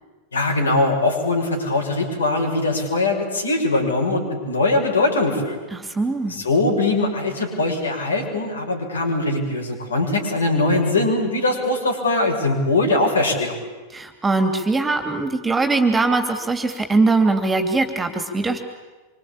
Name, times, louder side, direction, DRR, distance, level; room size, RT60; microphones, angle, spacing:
voice 1, 0.3-5.6 6.2-13.6, left 2 dB, 70° left, 1 dB, 6.8 m, -21 dB
voice 2, 5.7-6.4 13.9-18.6, right 3 dB, 10° right, 7 dB, 2.9 m, -21 dB
27.0 x 25.5 x 8.8 m, 1.3 s
figure-of-eight pair, 90°, 0 cm